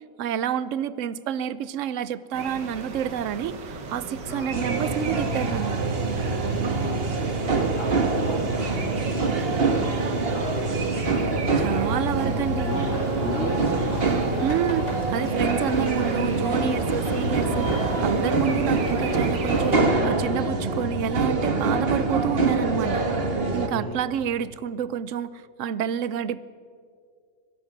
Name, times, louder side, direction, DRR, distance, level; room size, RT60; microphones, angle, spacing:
voice 1, 0.2-5.8 11.6-12.7 14.4-23.1 23.5-26.4, right 9 dB, 60° right, 16 dB, 0.8 m, -29 dB
sound 1, 2.3-19.8, right 4 dB, 85° right, 2.4 m, -37 dB
voice 2, 4.2-4.5 6.4-7.2 7.4-8.8 9.1-12.3 12.6-14.5 18.4-18.6 23.7-24.0, left 1 dB, 45° left, 0 dB, 3.9 m, -36 dB
sound 2, 4.5-23.7, right 3 dB, 35° right, 1.5 m, -25 dB
sound 3, 12.6-18.1, equal, 80° left, 6.4 m, -35 dB
25.0 x 17.5 x 6.0 m, 2.2 s
omnidirectional pair, 1.9 m